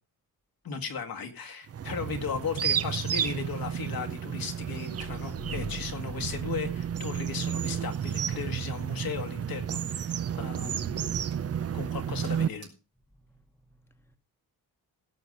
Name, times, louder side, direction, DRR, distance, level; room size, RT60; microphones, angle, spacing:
voice 1, 0.6-11.2 11.7-12.7, left 5 dB, 75° left, 1.9 m, -36 dB
sound 1, 1.7-12.5, right 8 dB, 45° right, 0.5 m, -32 dB
sound 2, 4.9-7.9, left 9 dB, 60° left, 0.6 m, -47 dB
sound 3, 7.5-12.7, right 5 dB, 80° right, 3.7 m, -61 dB
voice 2, 13.1-14.2, equal, 5° left, 1.2 m, -62 dB
16.5 x 6.5 x 5.3 m
wide cardioid pair, 115°, 35 cm